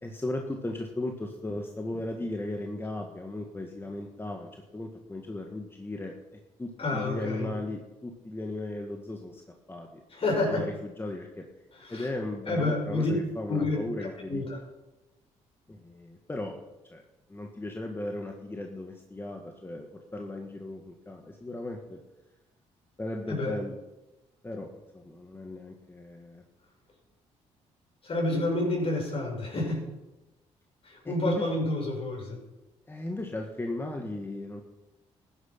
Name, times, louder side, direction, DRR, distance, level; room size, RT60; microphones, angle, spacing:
voice 1, 0.0-9.4 9.7-10.0 10.5-11.5 11.9-14.4 15.7-16.6 16.9-17.0 17.3-22.0 23.0-23.7 24.4-24.7 24.9-26.4 28.3-28.4 31.0-31.5 32.9-34.6, left 2 dB, 20° left, 2 dB, 1.7 m, -36 dB
voice 2, 6.8-7.5 10.1-10.7 11.7-12.1 12.5-13.1 13.5-14.6 23.3-23.5 28.0-29.9 30.8-32.4, left 2 dB, 50° left, 0 dB, 6.1 m, -29 dB
14.5 x 10.5 x 6.0 m, 1.0 s
cardioid pair, 75°, 13 cm